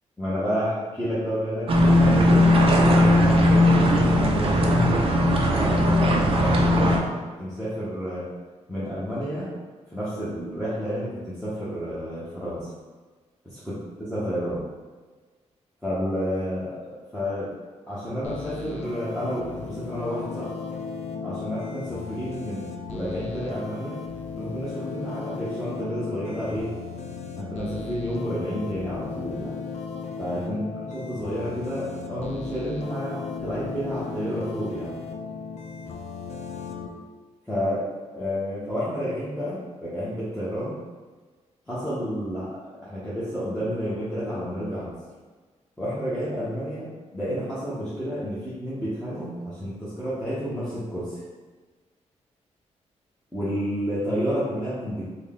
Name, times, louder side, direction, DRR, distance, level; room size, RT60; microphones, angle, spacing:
voice 1, 0.2-8.3 8.7-9.5 9.9-12.7 13.4-14.6 15.8-17.5 17.9-20.5 21.2-24.0 24.4-26.7 27.4-29.5 30.2-30.6 30.9-34.9 37.5-40.8 41.7-42.5 42.8-44.9 45.8-51.1 53.3-55.0, equal, 5° left, -12 dB, 0.9 m, -30 dB
sound 1, 1.7-7.0, left 1 dB, 50° right, 0.5 m, -18 dB
sound 2, 18.2-36.9, left 5 dB, 65° left, 0.4 m, -36 dB
3.8 x 2.2 x 3.5 m, 1.4 s
cardioid pair, 115°, 12 cm